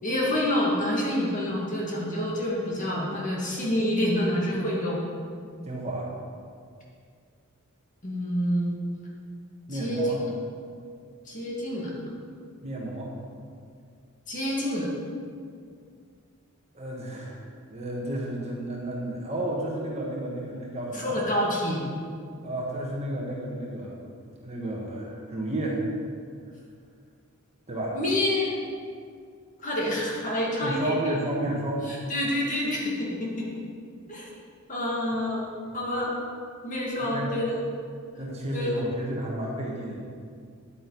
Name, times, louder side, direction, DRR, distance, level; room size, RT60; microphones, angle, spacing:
voice 1, 0.0-5.0 8.0-8.8 9.7-10.1 11.3-11.9 14.3-14.9 20.9-21.9 27.9-28.5 29.6-31.2 31.9-33.5 34.1-34.3 34.7-35.5 35.7-36.1 36.6-37.5 38.5-38.7, left 1 dB, 35° left, -4 dB, 2.2 m, -27 dB
voice 2, 5.7-6.1 9.7-10.2 12.6-13.2 16.7-17.4 17.7-21.2 22.4-25.9 27.7-28.0 30.6-31.8 35.6-35.8 37.0-37.3 38.2-40.0, right 1 dB, 30° right, -2 dB, 1.5 m, -32 dB
10.0 x 9.2 x 4.0 m, 2.2 s
head